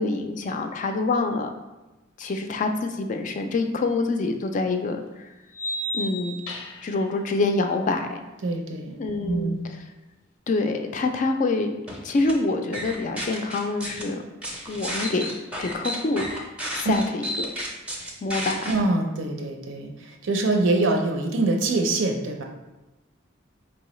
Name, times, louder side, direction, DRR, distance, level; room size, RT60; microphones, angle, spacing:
voice 1, 0.0-1.5 2.2-5.3 5.9-6.3 6.8-8.2 9.0-9.6 10.5-11.7 12.0-14.2 14.7-15.2 15.6-16.3 16.7-17.5 18.2-18.7, left 3 dB, 40° left, 6 dB, 0.3 m, -26 dB
sound 1, 3.9-4.0 5.5-7.0, equal, 90° left, 0.6 m, -32 dB
voice 2, 8.4-9.7 16.8-16.9 18.7-22.4, right 2 dB, 75° right, 2 dB, 0.6 m, -24 dB
sound 2, 11.9-12.3 12.7-14.0 14.4-18.7, equal, 5° right, 0.6 m, -32 dB
4.6 x 2.9 x 3.1 m, 1.0 s
head